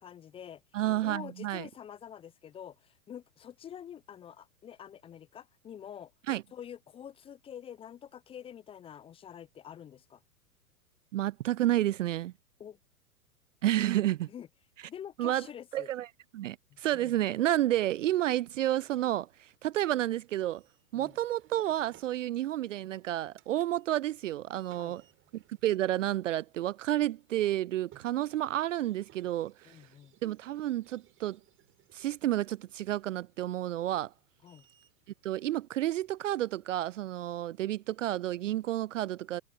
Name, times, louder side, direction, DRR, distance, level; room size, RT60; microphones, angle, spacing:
voice 1, 0.0-0.6 1.0-6.1 6.5-10.2 12.6-12.8 13.8-14.0 14.3-14.5 14.9-15.9 16.9-17.2 20.9-21.2 24.8-25.0 29.6-30.2 34.4-34.7, left 9 dB, 10° left, 0.7 m, -47 dB
voice 2, 0.7-1.7 6.3-6.4 11.1-12.3 13.6-14.3 15.2-15.5 15.7-16.1 16.3-20.6 20.9-25.0 25.3-29.8 30.2-31.4 31.9-34.1 35.2-39.4, right 13 dB, 55° right, 0.5 m, -30 dB
sound 1, 18.6-37.0, right 12 dB, 25° right, 7.9 m, -66 dB
figure-of-eight pair, 105°, 46 cm